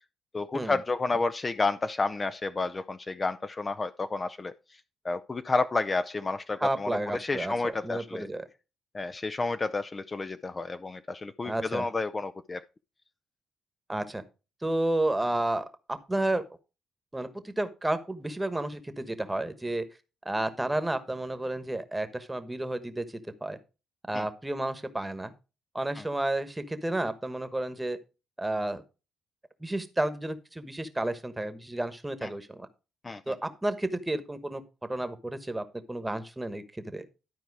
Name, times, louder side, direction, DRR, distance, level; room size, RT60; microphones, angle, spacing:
voice 1, 0.3-4.5 5.0-8.3 8.9-12.6 24.1-24.2 26.0-26.1 32.2-32.3 33.0-33.3, left 3 dB, 30° left, 0.4 m, -30 dB
voice 2, 6.6-8.4 11.4-11.9 13.9-14.2 14.6-16.4 17.1-19.8 20.2-23.6 24.1-25.3 25.7-28.0 28.4-28.8 29.6-32.7 33.3-34.6 34.9-37.1, right 1 dB, 10° right, 1.1 m, -31 dB
12.0 x 4.5 x 4.7 m
cardioid pair, 90°, 0 cm